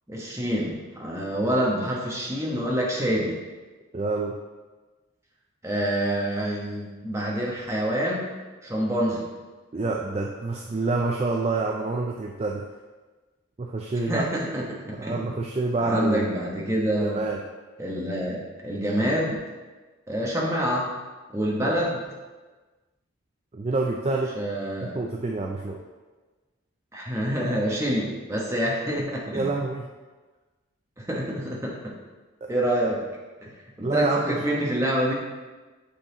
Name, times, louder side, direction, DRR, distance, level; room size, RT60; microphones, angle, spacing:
voice 1, 0.1-3.4 5.6-8.3 8.6-9.3 14.1-15.3 15.8-17.2 17.8-19.4 20.1-20.9 21.3-22.0 24.4-25.0 26.9-29.6 31.0-32.0 32.5-33.0 33.4-35.1, equal, 15° right, -3 dB, 1.1 m, -27 dB
voice 2, 3.9-4.4 9.7-12.7 13.6-14.3 15.0-16.3 17.0-17.4 21.6-21.7 23.5-24.3 24.8-25.8 29.3-29.9 32.4-32.5 33.8-34.4, right 3 dB, 30° right, 1 dB, 0.4 m, -27 dB
8.4 x 4.1 x 3.9 m, 1.3 s
head